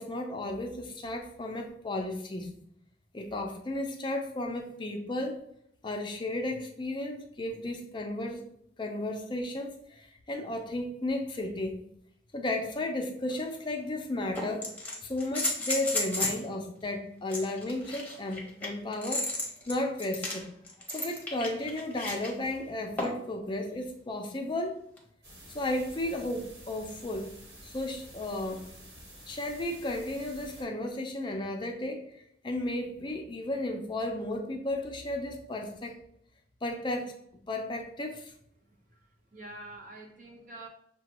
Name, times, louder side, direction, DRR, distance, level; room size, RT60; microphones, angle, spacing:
voice 1, 0.0-2.5 3.1-5.4 5.8-8.5 8.8-11.8 12.3-14.7 15.0-19.3 19.7-20.5 20.9-24.8 25.5-27.3 27.6-28.6 29.3-32.1 32.4-36.0 36.6-37.2 37.5-38.3, left 1 dB, 25° left, 3 dB, 0.5 m, -34 dB
sound 1, 13.3-13.4 14.3-16.4 17.3-22.3 23.0-23.3 25.0-25.1, left 2 dB, 10° left, 0.9 m, -34 dB
sound 2, 25.2-30.6, equal, 65° right, 1.6 m, -50 dB
voice 2, 38.7-40.7, right 1 dB, 45° right, 1 dB, 0.8 m, -47 dB
6.5 x 2.3 x 2.9 m, 0.71 s
head